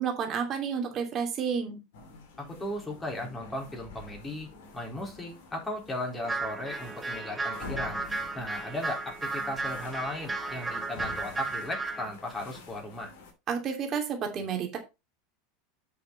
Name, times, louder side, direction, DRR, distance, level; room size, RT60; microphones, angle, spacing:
voice 1, 0.0-1.8 13.5-14.8, right 6 dB, 35° right, 4 dB, 2.8 m, -30 dB
sound 1, 1.9-13.3, left 3 dB, 60° left, 2.7 m, -47 dB
voice 2, 2.6-4.5 4.7-8.0 8.3-13.1, left 1 dB, 15° left, 0 dB, 4.2 m, -36 dB
sound 2, 6.2-12.1, right 3 dB, 15° right, 1.3 m, -34 dB
8.0 x 6.5 x 4.1 m, 0.25 s
figure-of-eight pair, 80°, 0 cm